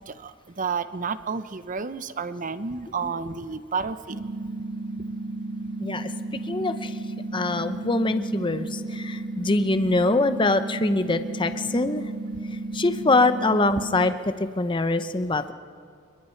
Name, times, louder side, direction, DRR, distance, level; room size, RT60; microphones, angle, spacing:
voice 1, 0.6-4.2, right 5 dB, 40° right, 13 dB, 0.7 m, -30 dB
sound 1, 4.1-14.1, right 2 dB, 60° right, 1.6 m, -33 dB
voice 2, 5.8-7.0 7.3-12.1 12.7-15.5, left 2 dB, 25° left, 10 dB, 0.7 m, -24 dB
27.5 x 22.0 x 4.5 m, 2.3 s
head